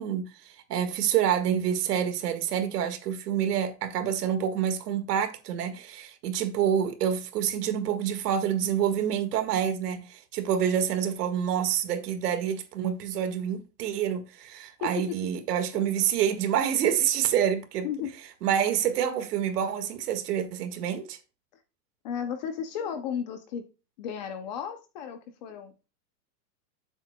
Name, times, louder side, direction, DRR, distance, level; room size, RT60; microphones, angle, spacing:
voice 1, 0.0-17.9 18.4-21.2, right 9 dB, 70° right, 1.8 m, -27 dB
voice 2, 14.8-15.2 15.7-15.8 17.8-18.1 22.0-23.6 24.0-25.9, left 8 dB, 30° left, 0.5 m, -34 dB
9.2 x 7.5 x 2.2 m
supercardioid pair, 165°, 49 cm